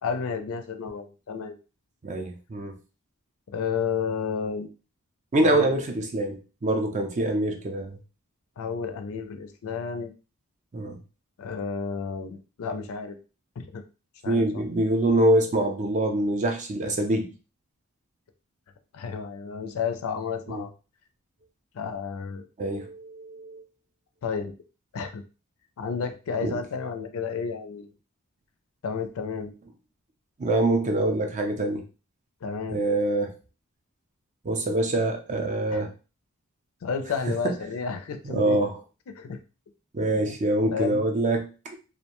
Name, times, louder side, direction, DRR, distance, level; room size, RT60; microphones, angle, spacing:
voice 1, 0.0-1.6 3.5-4.7 5.4-5.7 8.6-10.1 11.4-13.2 13.6-13.8 14.2-14.6 18.9-20.7 21.7-22.5 24.2-24.5 24.9-25.2 25.8-27.9 28.8-29.5 32.4-32.8 35.7-35.8 36.8-38.6 39.1-39.4 40.1-40.3 40.6-41.1, left 6 dB, 65° left, 8 dB, 0.4 m, -31 dB
voice 2, 2.0-2.8 5.3-8.0 10.7-11.0 14.3-17.3 20.5-20.6 22.6-23.6 26.4-26.6 30.4-31.8 32.7-33.3 34.4-35.9 38.3-38.8 39.9-41.8, right 1 dB, 35° right, 4 dB, 0.5 m, -25 dB
2.5 x 2.1 x 2.9 m, 0.33 s
head